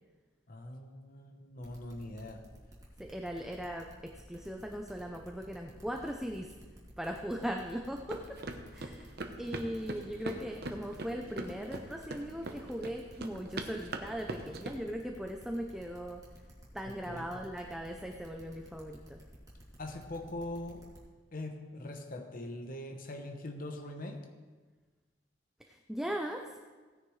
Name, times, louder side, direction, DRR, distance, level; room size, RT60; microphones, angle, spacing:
voice 1, 0.5-2.5 17.1-17.3 19.8-20.8 21.3-24.2, left 1 dB, 50° left, 4 dB, 1.0 m, -42 dB
sound 1, 1.6-21.0, equal, 20° right, 2.8 m, -54 dB
voice 2, 3.0-6.5 7.0-8.4 8.7-16.2 16.7-19.2 25.7-26.6, equal, 5° right, 2 dB, 0.6 m, -39 dB
sound 2, 8.1-14.7, right 2 dB, 65° right, 0.9 m, -41 dB
17.0 x 9.8 x 3.2 m, 1.4 s
head